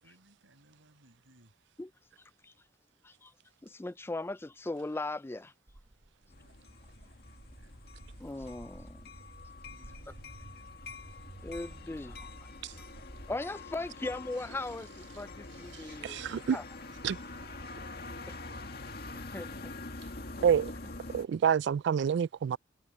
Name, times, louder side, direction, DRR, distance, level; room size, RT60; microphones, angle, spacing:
voice 1, 0.0-1.5 6.1-7.8 9.6-10.9, right 1 dB, 90° right, 6.2 m, -64 dB
voice 2, 3.6-5.5 8.2-9.0 11.4-12.3 13.3-16.6 18.3-18.4 19.2-19.7, left 2 dB, 10° left, 0.4 m, -39 dB
Walk footsteps, 5.7-13.4, right 1 dB, 35° right, 0.9 m, -52 dB
sound 1, 6.3-21.3, left 2 dB, 55° left, 2.0 m, -46 dB
voice 3, 16.0-16.6 17.0-17.2 20.4-20.7 21.1-22.6, right 8 dB, 60° right, 0.3 m, -27 dB
head